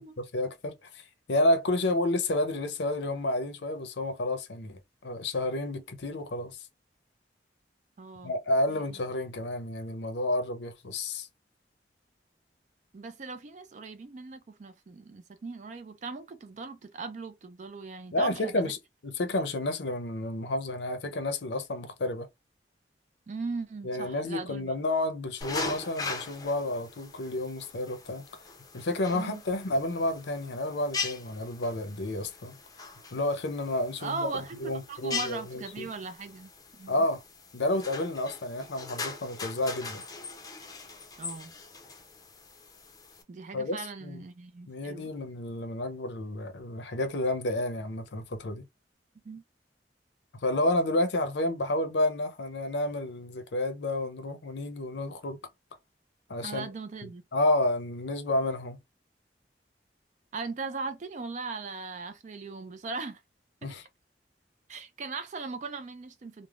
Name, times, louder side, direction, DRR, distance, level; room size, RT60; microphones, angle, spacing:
voice 1, 0.3-6.6 8.2-11.3 18.1-18.8 19.0-22.3 23.8-28.4 28.7-32.6 33.1-35.9 36.9-37.2 37.5-40.0 43.5-44.2 44.7-48.6 50.4-55.4 56.3-56.7 57.0-58.8 63.6-63.8, left 1 dB, 85° left, 0.6 m, -30 dB
voice 2, 8.0-8.3 8.7-8.8 12.9-18.7 23.3-24.7 29.1-29.4 34.0-36.5 36.8-36.9 41.2-41.5 43.3-45.1 49.2-49.4 56.4-57.2 60.3-63.2 63.6-63.7 64.7-66.5, right 4 dB, 45° right, 0.4 m, -39 dB
sound 1, 25.4-43.2, left 4 dB, 20° left, 0.5 m, -41 dB
3.3 x 2.0 x 2.3 m
head